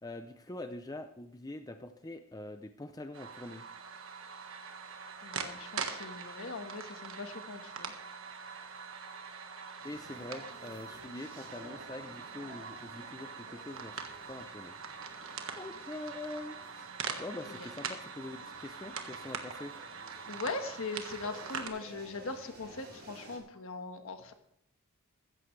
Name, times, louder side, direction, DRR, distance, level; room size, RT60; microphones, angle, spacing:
voice 1, 0.0-3.6 9.8-14.0 14.3-14.8 15.6-16.9 17.2-19.7, left 2 dB, 15° left, 7 dB, 0.5 m, -44 dB
sound 1, 3.1-21.7, right 5 dB, 60° right, 1.4 m, -43 dB
voice 2, 5.2-7.9 17.4-17.5 20.3-24.3, left 3 dB, 60° left, 6 dB, 1.5 m, -40 dB
sound 2, 9.8-23.4, right 1 dB, 45° right, 5.1 m, -54 dB
15.5 x 14.0 x 3.3 m, 0.74 s
head